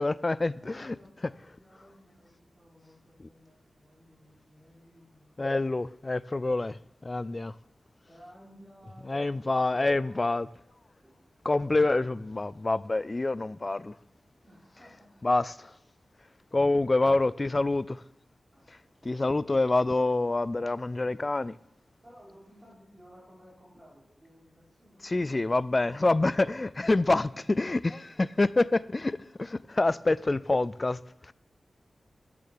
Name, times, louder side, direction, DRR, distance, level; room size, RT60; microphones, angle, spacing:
voice 1, 0.0-1.0 5.4-7.5 9.1-10.5 11.5-13.9 15.2-15.7 16.5-18.0 18.7-18.8 19.1-21.6 25.0-29.1 29.7-31.3, left 2 dB, 30° left, 0.3 m, -27 dB
voice 2, 0.6-5.4 8.1-10.4 11.0-12.0 14.4-15.3 18.5-19.2 22.0-26.3 28.7-29.2, equal, 15° right, 4.0 m, -57 dB
10.0 x 7.0 x 6.7 m
wide cardioid pair, 110°, 0 cm